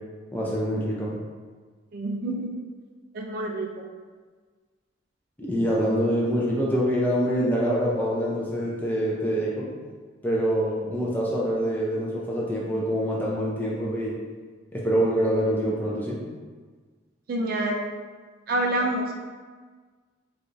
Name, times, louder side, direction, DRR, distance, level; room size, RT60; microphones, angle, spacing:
voice 1, 0.3-1.1 5.4-9.7 10.2-14.2 14.7-16.2, equal, 10° left, -5 dB, 0.5 m, -25 dB
voice 2, 1.9-2.5 3.1-3.7 17.3-17.8 18.5-19.1, right 1 dB, 50° right, 1 dB, 0.3 m, -27 dB
4.7 x 2.5 x 2.6 m, 1.5 s
head